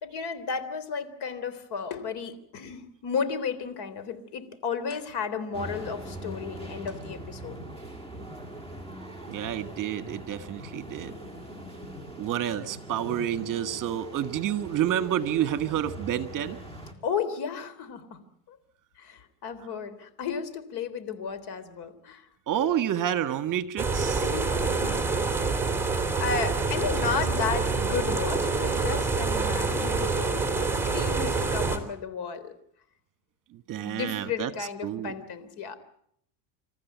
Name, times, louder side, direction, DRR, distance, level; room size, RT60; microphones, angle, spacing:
voice 1, 0.0-7.6 17.0-18.6 19.0-22.3 24.2-25.0 26.2-32.5 33.7-35.8, left 6 dB, 55° left, 12 dB, 3.7 m, -33 dB
sound 1, 5.5-16.9, right 1 dB, 10° left, 4.3 m, -41 dB
voice 2, 9.3-11.1 12.2-16.6 22.5-24.3 26.9-27.2 33.7-34.5 34.8-35.1, right 10 dB, 40° right, 11 dB, 1.8 m, -29 dB
sound 2, 23.8-31.8, right 4 dB, 5° right, 3.3 m, -26 dB
27.5 x 14.0 x 9.4 m, 0.70 s
supercardioid pair, 125°, 48 cm